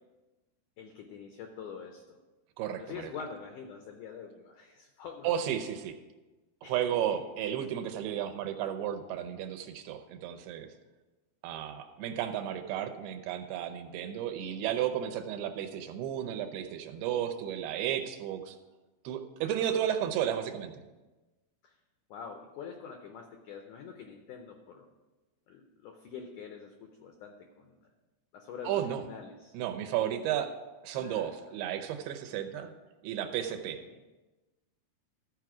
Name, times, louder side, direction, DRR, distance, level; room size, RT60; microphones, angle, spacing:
voice 1, 0.8-2.2 2.8-5.3 6.6-7.2 19.7-19.8 21.6-21.8 22.1-24.9 25.5-27.8 28.3-29.6 30.9-31.3 33.7-34.0, left 6 dB, 80° left, 4 dB, 1.8 m, -46 dB
voice 2, 2.6-3.1 5.2-6.0 6.7-10.7 11.4-18.6 19.0-20.7 28.6-29.0 29.5-30.5 30.8-32.7 33.0-33.8, right 10 dB, 80° right, 7 dB, 2.6 m, -33 dB
14.0 x 4.8 x 6.0 m, 1.2 s
omnidirectional pair, 4.5 m